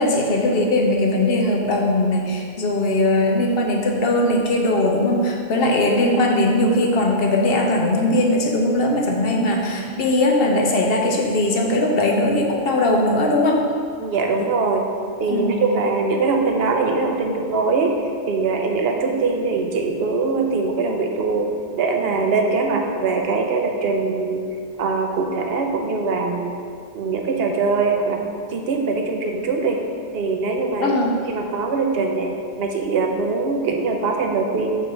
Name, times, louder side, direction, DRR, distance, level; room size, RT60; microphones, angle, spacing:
voice 1, 0.0-13.6 15.3-15.6 30.8-31.2, left 1 dB, 65° left, 1 dB, 0.9 m, -19 dB
voice 2, 14.0-14.9 15.2-24.4 24.8-26.5 26.9-28.2 28.5-29.8 30.1-31.0 31.3-32.3 32.6-34.8, right 4 dB, 70° right, 3 dB, 0.8 m, -22 dB
5.4 x 3.4 x 5.1 m, 2.2 s
omnidirectional pair, 1.1 m